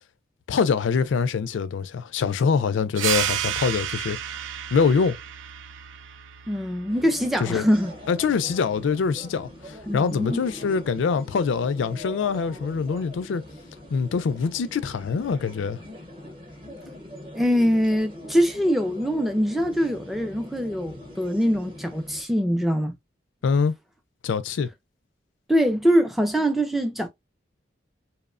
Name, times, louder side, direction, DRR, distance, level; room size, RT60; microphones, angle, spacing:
voice 1, 0.5-4.2 4.7-5.2 7.4-7.7 8.1-13.4 13.9-15.8 23.4-23.7 24.2-24.7, left 5 dB, 80° left, 0.3 m, -24 dB
sound 1, 3.0-8.1, right 10 dB, 85° right, 0.3 m, -31 dB
voice 2, 6.5-7.9 9.9-10.4 17.3-23.0 25.5-27.1, equal, ahead, 0.3 m, -23 dB
sound 2, 6.9-22.2, left 1 dB, 30° right, 0.8 m, -42 dB
2.9 x 2.1 x 2.3 m
head